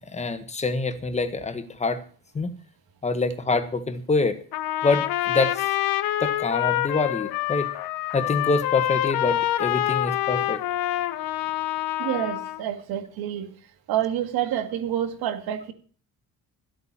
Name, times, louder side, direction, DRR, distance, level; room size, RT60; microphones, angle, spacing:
voice 1, 0.1-2.0 2.3-2.6 3.0-4.4 4.8-5.6 6.2-7.7 8.1-10.6, left 3 dB, 20° left, 10 dB, 1.4 m, -25 dB
Trumpet, 4.5-12.6, left 14 dB, 75° left, 0.9 m, -26 dB
voice 2, 12.0-13.5 13.9-15.7, right 10 dB, 80° right, 8 dB, 2.1 m, -28 dB
13.5 x 8.4 x 7.4 m, 0.43 s
cardioid pair, 145°, 36 cm